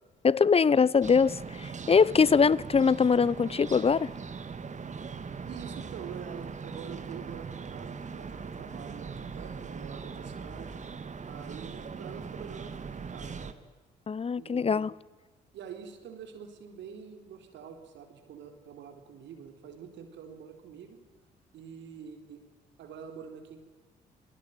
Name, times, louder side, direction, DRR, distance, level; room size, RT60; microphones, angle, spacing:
voice 1, 0.2-4.1 14.1-14.9, left 5 dB, 30° left, 0.9 m, -23 dB
sound 1, 1.0-13.5, right 5 dB, 35° right, 2.3 m, -40 dB
voice 2, 5.5-10.7 11.3-13.5 14.4-14.8 15.5-21.0 21.5-22.4 22.8-23.6, right 7 dB, 65° right, 4.1 m, -46 dB
29.5 x 20.5 x 9.3 m
hypercardioid pair, 50°, 20 cm